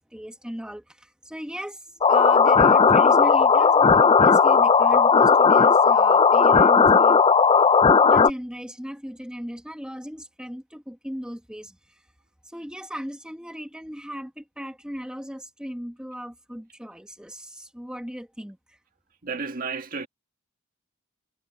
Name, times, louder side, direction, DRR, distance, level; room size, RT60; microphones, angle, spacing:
voice 1, 0.0-7.2 8.0-12.1 12.4-18.8, equal, 5° right, 1.8 m, -37 dB
sound 1, 2.0-8.3, left 5 dB, 25° left, 0.4 m, -16 dB
voice 2, 19.2-20.1, right 4 dB, 45° right, 1.7 m, -32 dB
head